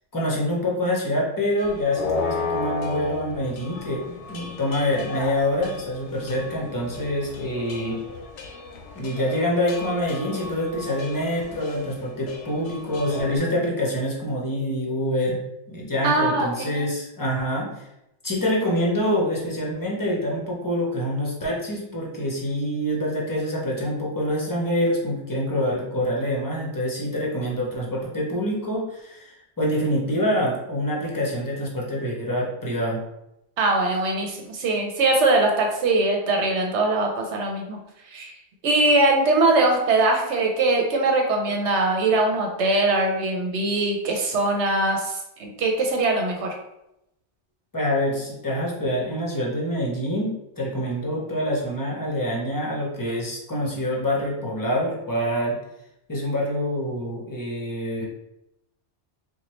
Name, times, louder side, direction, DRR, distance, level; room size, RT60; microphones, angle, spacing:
voice 1, 0.1-8.0 8.9-15.4 15.7-17.9 18.2-33.0 47.7-55.6 56.1-58.0, equal, 20° left, -3 dB, 0.7 m, -26 dB
sound 1, 1.6-13.4, left 4 dB, 85° left, 0.9 m, -34 dB
voice 2, 16.0-16.9 33.6-37.8 38.1-38.3 38.6-46.5, right 2 dB, 75° right, 1 dB, 1.0 m, -22 dB
4.5 x 2.2 x 3.1 m, 0.86 s
omnidirectional pair, 1.2 m